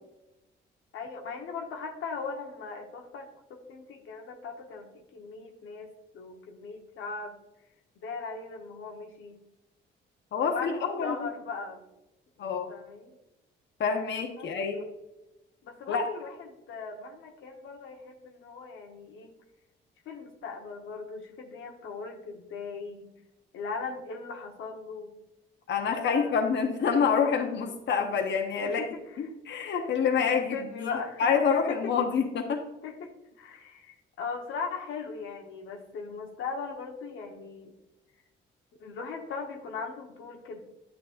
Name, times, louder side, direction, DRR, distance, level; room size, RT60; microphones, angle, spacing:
voice 1, 0.9-7.3 8.0-9.4 10.4-11.8 12.4-13.1 14.4-14.5 15.6-19.3 20.1-23.1 23.5-25.1 25.9-26.4 28.6-29.2 30.3-32.1 32.8-37.7 38.8-40.6, left 4 dB, 80° left, 3 dB, 1.1 m, -39 dB
voice 2, 10.3-11.3 12.4-12.7 13.8-14.9 15.9-16.0 25.7-28.8 29.2-30.9 31.2-32.6, left 6 dB, 65° left, 3 dB, 1.0 m, -27 dB
9.5 x 7.3 x 2.5 m, 0.95 s
cardioid pair, 90°, 20 cm